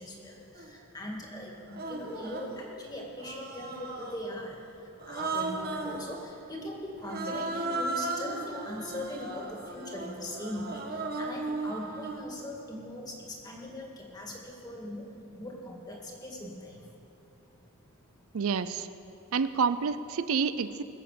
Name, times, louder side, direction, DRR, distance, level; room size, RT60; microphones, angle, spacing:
voice 1, 0.0-16.9 17.5-18.4, left 1 dB, 20° left, -1 dB, 2.2 m, -41 dB
Human voice, 0.6-0.7 1.7-2.6 3.2-4.3 5.0-6.1 7.0-12.3, right 3 dB, 45° right, 1.3 m, -36 dB
voice 2, 18.3-18.9 19.3-20.8, right 5 dB, 70° right, 13 dB, 0.5 m, -28 dB
21.5 x 7.9 x 6.8 m, 2.9 s
head